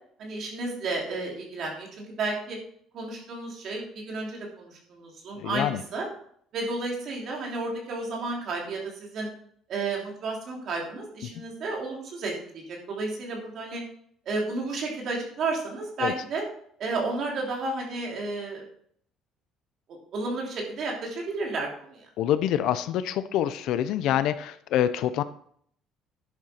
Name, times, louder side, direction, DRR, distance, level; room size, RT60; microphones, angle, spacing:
voice 1, 0.2-2.6 2.9-6.1 6.5-9.3 9.7-13.8 14.2-16.4 16.8-18.6 19.9-22.1, right 3 dB, 45° right, -1 dB, 3.0 m, -32 dB
voice 2, 5.4-5.8 16.0-16.1 22.2-25.2, left 11 dB, 65° left, 13 dB, 0.6 m, -26 dB
11.0 x 8.0 x 4.4 m, 0.62 s
cardioid pair, 160°, 0 cm